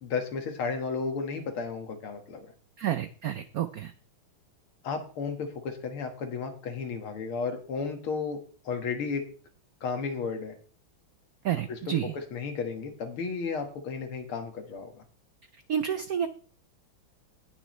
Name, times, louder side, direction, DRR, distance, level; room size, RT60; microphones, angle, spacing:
voice 1, 0.0-2.5 4.8-9.2 9.8-10.6 11.7-11.8 12.1-15.0, left 5 dB, 90° left, 5 dB, 2.6 m, -33 dB
voice 2, 2.8-3.9 11.4-12.2 15.7-16.3, right 9 dB, 80° right, 10 dB, 0.8 m, -29 dB
18.5 x 6.4 x 3.2 m, 0.40 s
omnidirectional pair, 2.3 m